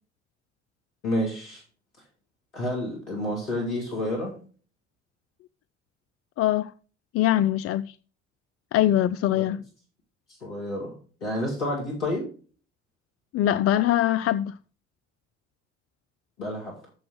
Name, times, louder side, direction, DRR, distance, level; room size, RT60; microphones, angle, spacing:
voice 1, 1.0-1.6 2.5-4.4 9.3-9.5 10.4-10.9 11.2-12.3 16.4-16.7, left 1 dB, 90° left, 2.1 m, -29 dB
voice 2, 6.4-6.7 7.1-7.9 8.7-9.6 13.3-14.5, left 12 dB, 45° left, 0.4 m, -22 dB
7.0 x 6.3 x 6.3 m
hypercardioid pair, 50°, 35 cm